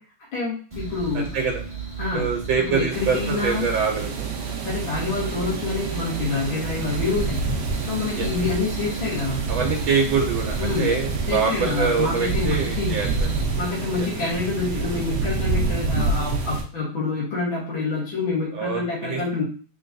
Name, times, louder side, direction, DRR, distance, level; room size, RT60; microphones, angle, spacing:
voice 1, 0.3-1.3 2.0-2.2 2.7-3.7 4.6-7.4 7.9-9.4 10.6-10.9 11.3-13.0 13.6-19.4, left 4 dB, 75° left, -5 dB, 2.1 m, -27 dB
sound 1, 0.7-13.4, right 6 dB, 15° right, 1.7 m, -34 dB
voice 2, 1.1-1.6 2.1-4.3 8.2-8.3 9.5-13.3 18.5-19.2, right 5 dB, 80° right, 0 dB, 1.5 m, -25 dB
sound 2, 2.9-16.6, right 3 dB, 60° right, 1.0 m, -28 dB
3.9 x 3.8 x 2.6 m, 0.40 s
omnidirectional pair, 2.2 m